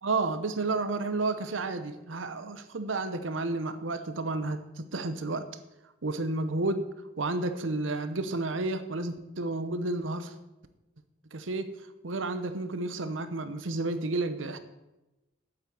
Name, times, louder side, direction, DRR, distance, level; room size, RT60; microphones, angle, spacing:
voice 1, 0.0-5.5 6.0-6.9 7.2-10.3 11.3-11.8 12.0-14.6, right 2 dB, 80° right, 11 dB, 0.8 m, -31 dB
8.7 x 8.0 x 7.1 m, 0.98 s
head